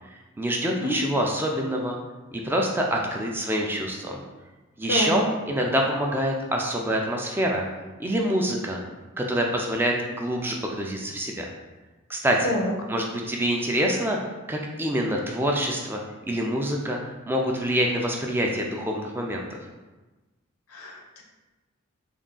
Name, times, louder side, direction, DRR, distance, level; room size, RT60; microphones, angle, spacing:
voice 1, 0.4-1.9 2.3-4.2 4.8-7.7 8.0-8.8 9.2-11.5 12.1-12.5 12.9-14.2 14.5-16.0 16.3-17.0 17.3-19.4, equal, 10° right, 0 dB, 0.3 m, -26 dB
voice 2, 20.7-21.2, equal, 85° left, 0 dB, 0.7 m, -27 dB
3.5 x 2.3 x 3.7 m, 1.2 s
head